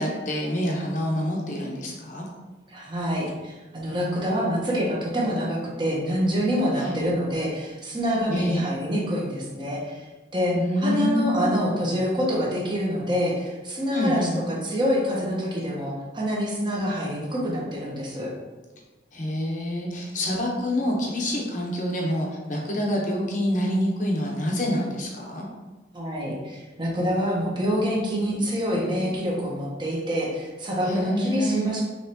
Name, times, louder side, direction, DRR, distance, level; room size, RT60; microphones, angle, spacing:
voice 1, 0.0-2.3 6.7-7.0 8.3-8.6 10.5-11.5 13.9-14.4 19.1-25.5 30.8-31.8, equal, 45° left, -2 dB, 0.9 m, -27 dB
voice 2, 2.7-10.0 10.3-10.5 10.8-18.3 25.9-31.8, equal, 25° right, -4 dB, 1.0 m, -26 dB
5.7 x 3.2 x 2.8 m, 1.2 s
head